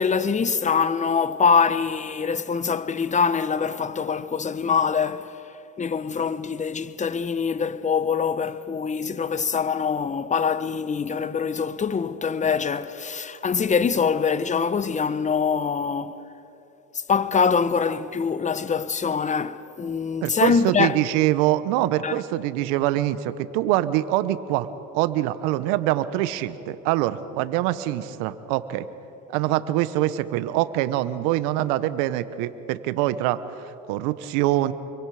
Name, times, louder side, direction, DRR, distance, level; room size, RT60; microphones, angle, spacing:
voice 1, 0.0-5.3 5.8-16.1 17.1-21.0 22.0-22.2, left 6 dB, 20° left, 0.9 m, -24 dB
voice 2, 20.2-24.7 24.9-28.9 29.3-34.7, right 14 dB, 70° right, 1.2 m, -24 dB
29.0 x 23.0 x 5.0 m
hypercardioid pair, 85°, 40 cm